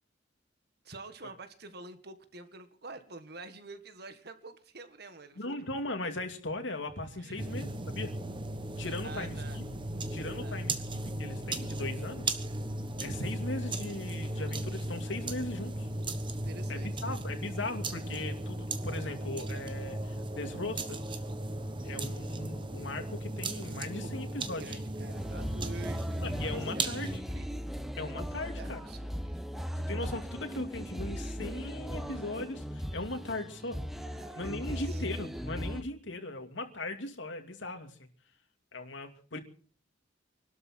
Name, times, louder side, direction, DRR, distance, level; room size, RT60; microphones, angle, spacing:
voice 1, 0.8-5.6 7.2-7.6 9.0-9.6 10.4-10.8 16.4-17.4 24.0-27.5 28.2-28.3 28.6-29.4 34.1-35.0, right 3 dB, 60° right, 10 dB, 1.7 m, -48 dB
voice 2, 5.4-8.2 8.8-9.6 10.1-12.4 13.0-15.9 16.7-21.0 21.8-24.6 26.2-27.2 28.0-28.8 29.8-33.8 34.4-37.9 38.7-39.4, left 2 dB, 85° left, 5 dB, 2.6 m, -38 dB
sound 1, 7.4-27.2, right 2 dB, 25° right, 1.2 m, -36 dB
sound 2, 8.8-18.5 19.4-23.3, equal, 85° right, 6.3 m, -56 dB
sound 3, 25.1-35.8, equal, ahead, 0.9 m, -38 dB
25.0 x 12.5 x 4.5 m, 0.43 s
head